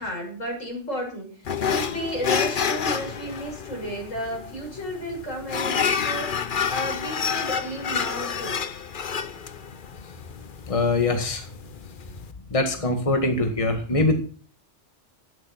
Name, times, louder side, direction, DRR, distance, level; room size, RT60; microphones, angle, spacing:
voice 1, 0.0-6.4 6.7-8.6, equal, 90° left, 0 dB, 7.0 m, -33 dB
sound 1, 1.5-12.3, left 7 dB, 45° left, 1.0 m, -29 dB
voice 2, 10.7-11.5 12.5-14.1, left 2 dB, 25° left, 5 dB, 1.9 m, -23 dB
13.0 x 10.5 x 5.9 m, 0.42 s
omnidirectional pair, 1.3 m